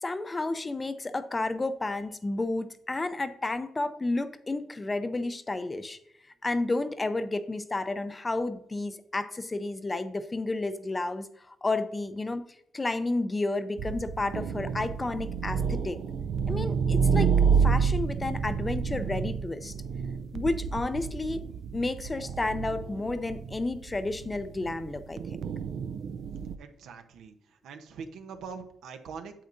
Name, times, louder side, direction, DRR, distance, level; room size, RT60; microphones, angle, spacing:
voice 1, 0.0-6.0 6.4-12.4 12.7-16.0 16.5-17.3 17.6-19.7 20.3-21.4 21.7-25.2, left 2 dB, 20° left, 11 dB, 0.5 m, -31 dB
sound 1, 13.8-26.6, right 6 dB, 65° right, 0.4 m, -29 dB
voice 2, 26.6-29.3, right 5 dB, 90° right, 6 dB, 0.9 m, -43 dB
8.7 x 7.5 x 2.6 m, 0.75 s
cardioid pair, 120°, 0 cm